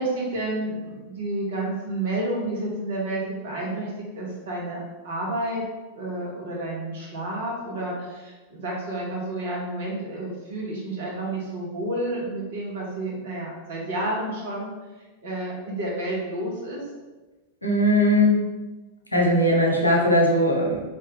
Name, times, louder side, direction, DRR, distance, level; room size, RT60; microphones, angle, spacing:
voice 1, 0.0-5.6 5.9-14.7 15.2-16.8, right 1 dB, 60° right, -4 dB, 1.2 m, -30 dB
voice 2, 17.6-18.4 19.1-20.8, left 1 dB, 90° left, -1 dB, 0.7 m, -19 dB
3.6 x 3.1 x 3.0 m, 1.2 s
figure-of-eight pair, 90°, 0 cm